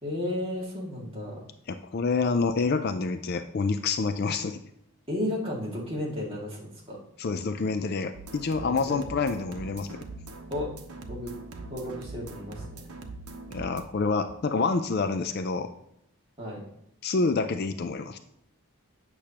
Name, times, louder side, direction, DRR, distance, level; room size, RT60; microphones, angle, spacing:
voice 1, 0.0-1.4 5.1-7.0 8.6-9.0 10.5-10.7 11.1-11.3 11.7-12.6 16.4-16.7, left 1 dB, 25° right, -5 dB, 2.1 m, -33 dB
voice 2, 1.7-4.6 7.2-10.0 13.5-15.7 17.0-18.2, left 4 dB, 45° left, 9 dB, 0.4 m, -27 dB
sound 1, 8.1-13.8, right 2 dB, 90° right, 0.9 m, -42 dB
8.4 x 6.1 x 2.9 m, 0.78 s
head